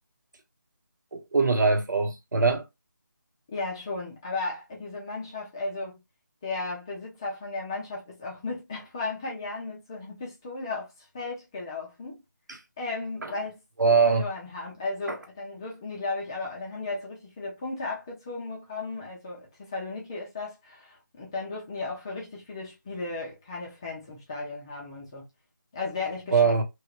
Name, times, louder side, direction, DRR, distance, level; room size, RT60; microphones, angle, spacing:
voice 1, 1.1-2.6 12.5-12.6 13.8-14.2 15.1-15.2 26.3-26.6, right 4 dB, 65° right, 1.2 m, -22 dB
voice 2, 3.5-6.0 6.4-12.2 12.8-25.2 25.7-26.5, left 3 dB, 15° left, 0.6 m, -35 dB
3.0 x 2.6 x 2.9 m
figure-of-eight pair, 170°, 11 cm